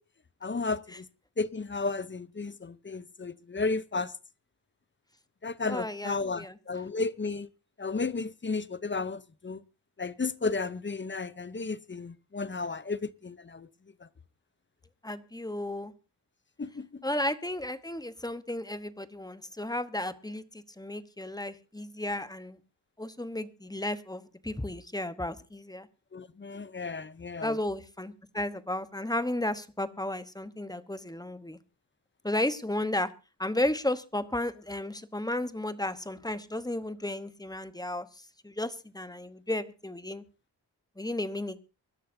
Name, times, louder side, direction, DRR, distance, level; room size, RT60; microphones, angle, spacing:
voice 1, 0.4-1.1 1.4-4.1 5.4-7.5 7.8-9.6 10.0-13.7 16.6-17.0 26.1-27.6, left 3 dB, 30° left, 0.7 m, -33 dB
voice 2, 5.6-6.6 15.0-15.9 17.0-22.6 23.0-25.9 27.4-31.6 32.2-33.1 33.4-38.1 38.4-40.2 41.0-41.6, left 1 dB, 10° left, 1.0 m, -33 dB
24.5 x 12.5 x 2.7 m
wide cardioid pair, 90°, 42 cm